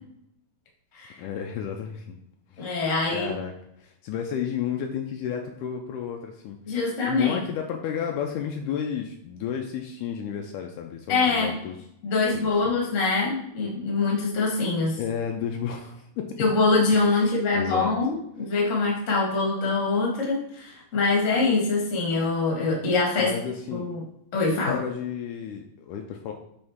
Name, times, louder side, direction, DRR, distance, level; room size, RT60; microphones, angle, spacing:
voice 1, 1.2-2.2 2.5-2.8 3.1-3.5 3.8-6.6 7.0-11.8 12.3-12.5 15.0-16.3 17.2-17.9 23.2-23.9 24.7-26.3, left 8 dB, 80° left, 3 dB, 2.0 m, -32 dB
voice 2, 2.6-3.3 6.7-7.4 11.1-11.5 12.0-15.0 16.4-23.3 23.7-24.0 24.3-24.8, left 3 dB, 35° left, -3 dB, 1.3 m, -24 dB
7.8 x 4.0 x 3.6 m, 0.77 s
omnidirectional pair, 3.9 m